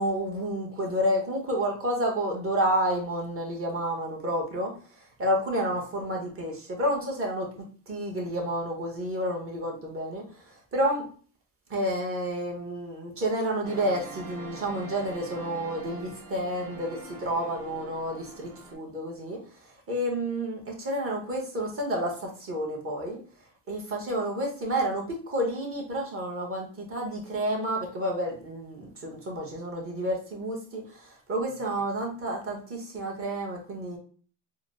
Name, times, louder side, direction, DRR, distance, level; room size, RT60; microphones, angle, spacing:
voice 1, 0.0-7.5 7.9-11.0 11.7-23.2 23.7-34.0, equal, 30° right, 0 dB, 1.0 m, -30 dB
sound 1, 13.6-18.7, right 3 dB, 45° right, 1.6 m, -44 dB
4.2 x 2.0 x 2.6 m, 0.42 s
cardioid pair, 130°, 45 cm